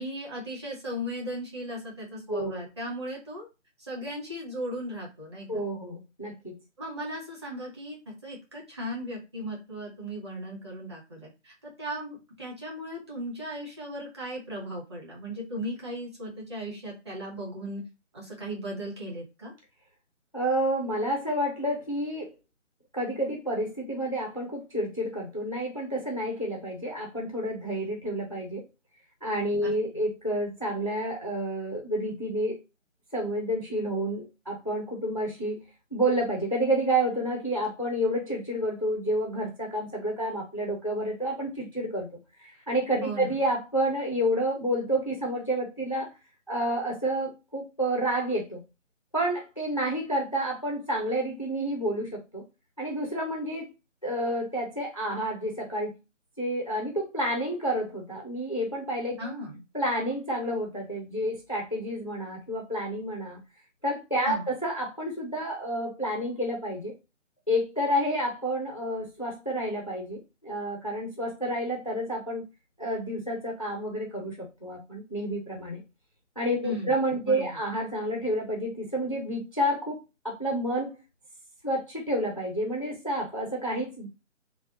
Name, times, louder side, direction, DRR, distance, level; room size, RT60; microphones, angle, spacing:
voice 1, 0.0-3.5 3.9-5.6 6.8-17.8 18.1-19.5 29.6-29.7 43.0-43.4 59.2-59.6 64.3-64.5 76.6-77.0 77.2-77.6, equal, 20° right, -4 dB, 0.9 m, -37 dB
voice 2, 2.3-2.7 5.5-6.6 20.3-22.3 22.9-28.6 29.2-32.6 33.1-35.7 35.9-42.1 42.4-46.1 46.5-48.6 49.1-52.4 52.8-53.7 54.0-56.0 56.4-59.3 59.7-63.4 63.8-66.9 67.5-72.4 72.8-75.8 76.4-81.0 81.6-84.1, right 1 dB, 30° left, 0 dB, 0.4 m, -29 dB
3.5 x 2.0 x 3.5 m, 0.27 s
figure-of-eight pair, 155°, 38 cm